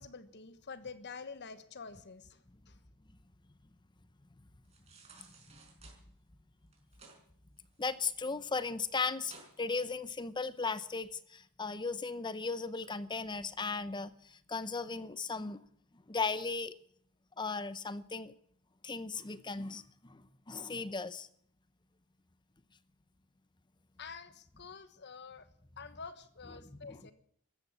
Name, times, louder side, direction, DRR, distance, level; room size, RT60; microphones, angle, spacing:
voice 1, 0.0-2.4 2.7-2.8 24.0-25.5 25.8-27.1, left 5 dB, 50° left, 1.3 m, -48 dB
sound 1, 4.6-6.0 6.7-7.2 7.6-8.4 8.8-8.9 9.2-9.5 10.0-10.1, right 4 dB, 30° right, 5.4 m, -56 dB
voice 2, 7.8-15.6 16.1-16.7 17.4-18.3 18.8-21.3 26.5-27.0, left 4 dB, 20° left, 0.8 m, -37 dB
15.0 x 13.5 x 7.2 m
head